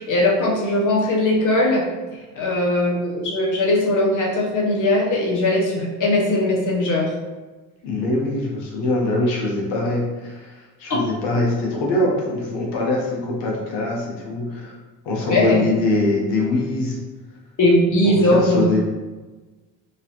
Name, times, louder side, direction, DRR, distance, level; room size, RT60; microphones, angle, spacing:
voice 1, 0.0-1.8 2.3-7.1 10.9-11.0 15.3-15.6 17.6-18.6, left 1 dB, 45° left, -2 dB, 0.9 m, -19 dB
voice 2, 7.8-14.7 15.0-17.0 18.0-18.8, left 2 dB, 85° left, -2 dB, 0.9 m, -23 dB
3.0 x 2.5 x 2.8 m, 1.2 s
cardioid pair, 100°, 41 cm